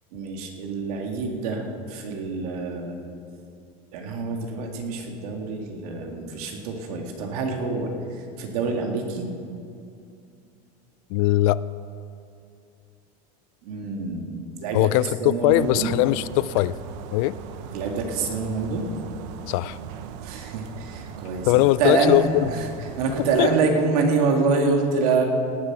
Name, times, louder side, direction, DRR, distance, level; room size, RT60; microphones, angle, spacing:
voice 1, 0.1-2.9 3.9-9.3 13.6-15.9 17.7-18.9 20.2-22.2 22.5-22.6 23.0-25.2, right 4 dB, 80° right, 2 dB, 2.1 m, -26 dB
voice 2, 11.1-11.6 14.7-16.7 17.1-17.4 19.5-19.8 21.5-22.5 23.4-23.5, left 17 dB, 65° left, 18 dB, 0.4 m, -20 dB
sound 1, 15.5-23.4, right 7 dB, 65° right, 0.9 m, -39 dB
17.5 x 7.5 x 6.0 m, 2.4 s
supercardioid pair, 145°, 19 cm